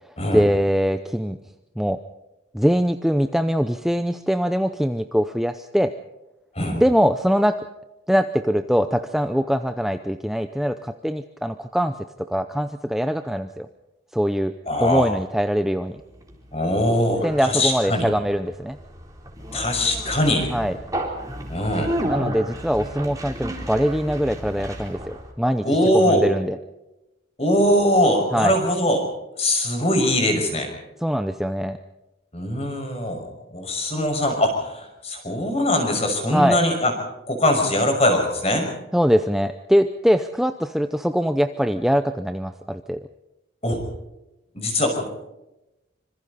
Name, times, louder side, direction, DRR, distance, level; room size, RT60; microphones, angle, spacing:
voice 1, 0.3-1.4 1.8-2.0 2.5-5.9 6.7-7.6 8.1-13.7 14.1-14.5 14.8-16.0 17.2-18.8 20.5-20.8 22.0-25.6 26.1-26.6 28.3-28.6 31.0-31.8 36.3-36.6 38.9-43.0, equal, ahead, 8 dB, 0.7 m, -22 dB
voice 2, 14.7-15.1 16.5-18.1 19.5-20.5 21.5-22.0 25.6-26.2 27.4-29.1 29.4-30.7 32.3-36.9 37.3-38.7 43.6-43.8 44.5-45.1, left 1 dB, 30° left, 4 dB, 5.9 m, -21 dB
Conversation, 15.8-25.3, equal, 15° right, 3.9 m, -32 dB
26.5 x 26.0 x 4.2 m, 0.94 s
head